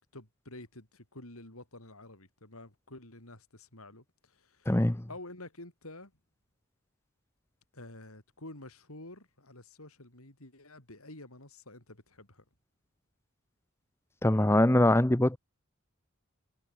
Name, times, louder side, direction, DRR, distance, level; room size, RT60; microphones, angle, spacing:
voice 1, 0.0-4.8 5.1-6.1 7.7-12.4, left 2 dB, 80° left, 5.7 m, -49 dB
voice 2, 4.7-5.0 14.2-15.4, left 1 dB, 10° left, 0.7 m, -23 dB
head